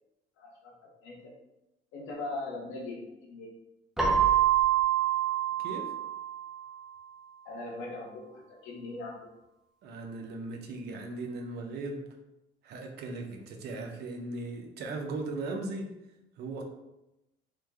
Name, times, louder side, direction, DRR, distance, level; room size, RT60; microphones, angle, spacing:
voice 1, 0.4-1.3 1.9-3.5 7.4-9.3, left 2 dB, 80° left, -1 dB, 1.0 m, -40 dB
Keyboard (musical), 4.0-6.7, right 10 dB, ahead, 0.4 m, -26 dB
voice 2, 5.6-5.9 9.8-12.0 12.6-15.9 16.4-16.6, right 2 dB, 55° right, 3 dB, 0.6 m, -38 dB
3.2 x 2.1 x 3.4 m, 0.91 s
cardioid pair, 140°, 20 cm